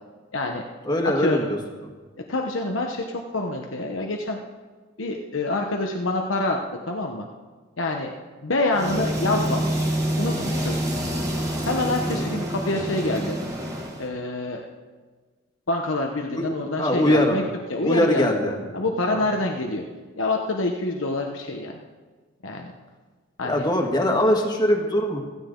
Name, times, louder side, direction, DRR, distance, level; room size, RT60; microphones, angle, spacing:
voice 1, 0.3-0.6 1.0-1.5 2.3-4.4 5.0-6.6 6.9-7.3 7.8-8.1 8.4-10.8 11.7-13.4 14.0-14.7 15.7-17.4 17.7-18.3 18.7-19.9 20.2-21.7 22.4-22.7 23.4-23.7, left 2 dB, 85° left, 2 dB, 1.2 m, -26 dB
voice 2, 0.9-1.6 12.2-12.3 16.4-16.5 16.8-17.4 17.8-18.7 19.1-19.2 23.4-25.2, left 1 dB, 20° left, 2 dB, 1.8 m, -22 dB
sound 1, 8.7-14.1, right 1 dB, 15° right, 2.1 m, -27 dB
16.5 x 15.5 x 3.9 m, 1.4 s
head